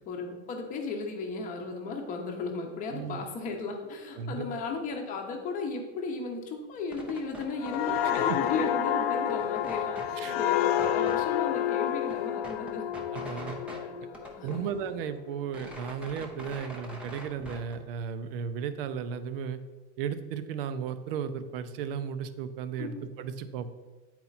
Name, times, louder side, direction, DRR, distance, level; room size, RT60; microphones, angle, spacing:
voice 1, 0.1-12.9 13.2-13.4 13.8-14.7 22.8-22.9, left 4 dB, 25° left, 3 dB, 0.9 m, -35 dB
voice 2, 2.9-3.3 4.2-4.5 8.0-8.4 10.2-10.4 13.1-13.6 14.4-19.6 20.0-23.7, right 7 dB, 55° right, 11 dB, 0.6 m, -35 dB
sound 1, 6.8-8.7 9.0-10.1 10.7-11.2 11.7-11.8 12.0-13.8 14.1-15.0 15.3-17.7, equal, 5° right, 0.6 m, -44 dB
sound 2, 7.6-15.1 15.5-15.7, left 11 dB, 60° left, 0.4 m, -29 dB
9.0 x 4.4 x 4.1 m, 1.3 s
supercardioid pair, 155°, 35 cm